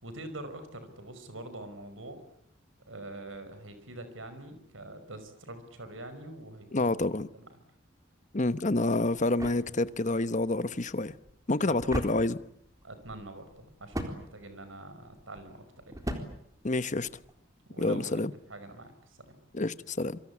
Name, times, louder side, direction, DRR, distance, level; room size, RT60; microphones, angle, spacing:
voice 1, 0.0-2.2 2.9-6.9 7.3-7.5 11.6-11.8 12.8-16.0 17.7-19.4, right 2 dB, 80° right, 5.5 m, -45 dB
voice 2, 6.7-7.3 8.3-11.1 11.5-12.4 16.6-17.1 17.8-18.3 19.5-20.2, left 2 dB, 40° left, 1.0 m, -28 dB
sound 1, 8.5-17.4, equal, 20° right, 3.9 m, -42 dB
27.5 x 24.0 x 8.6 m
head